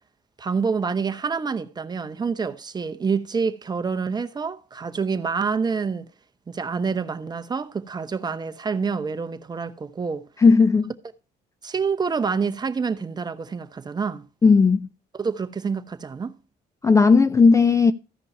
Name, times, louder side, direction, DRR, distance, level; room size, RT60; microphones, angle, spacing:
voice 1, 0.4-6.1 6.5-10.2 11.6-14.2 15.2-16.4, right 5 dB, 25° right, 0.8 m, -27 dB
voice 2, 10.4-10.9 14.4-14.9 16.8-17.9, left 4 dB, 20° left, 0.4 m, -15 dB
14.5 x 5.3 x 4.3 m
cardioid pair, 110°, 17 cm